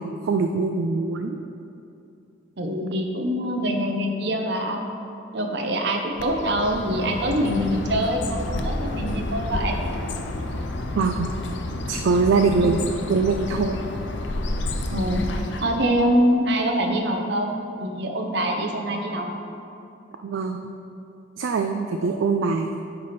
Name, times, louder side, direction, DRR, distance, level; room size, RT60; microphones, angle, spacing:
voice 1, 0.0-1.4 11.0-11.3 11.9-13.8 20.2-20.7 21.4-22.8, right 4 dB, 85° right, 5 dB, 0.4 m, -23 dB
voice 2, 2.6-4.8 5.3-9.8 12.6-12.7 14.9-15.2 15.6-19.3 22.0-22.2, equal, 60° right, 3 dB, 0.8 m, -24 dB
Bird, 6.2-15.9, left 1 dB, 65° left, 0.6 m, -30 dB
9.0 x 3.4 x 5.7 m, 2.7 s
head